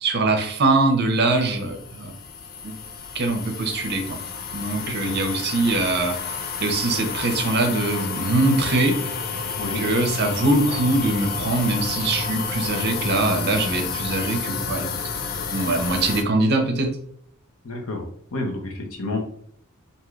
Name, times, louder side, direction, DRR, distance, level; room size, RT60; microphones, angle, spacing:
voice 1, 0.0-2.1 2.6-2.7 3.1-4.2 4.5-6.2 6.6-8.9 9.7-15.0 15.5-16.9, right 2 dB, 50° right, 4 dB, 0.6 m, -22 dB
sound 1, 1.1-16.2, left 5 dB, 45° left, 0.3 m, -30 dB
voice 2, 4.9-5.2 9.6-9.8 17.6-19.2, left 2 dB, 70° left, 2 dB, 0.8 m, -30 dB
3.1 x 2.7 x 2.4 m, 0.64 s
head